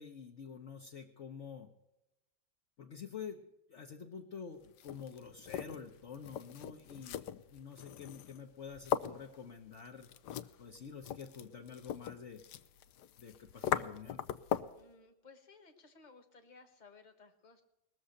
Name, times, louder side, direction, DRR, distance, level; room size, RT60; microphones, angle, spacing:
voice 1, 0.0-1.7 2.8-10.1 10.6-12.4 13.2-14.2, left 6 dB, 45° left, 2 dB, 1.0 m, -48 dB
sound 1, 4.6-14.8, left 10 dB, 70° left, 1.1 m, -41 dB
voice 2, 14.7-17.6, left 4 dB, 25° left, 6 dB, 1.3 m, -59 dB
20.5 x 7.0 x 6.5 m, 0.90 s
omnidirectional pair, 2.3 m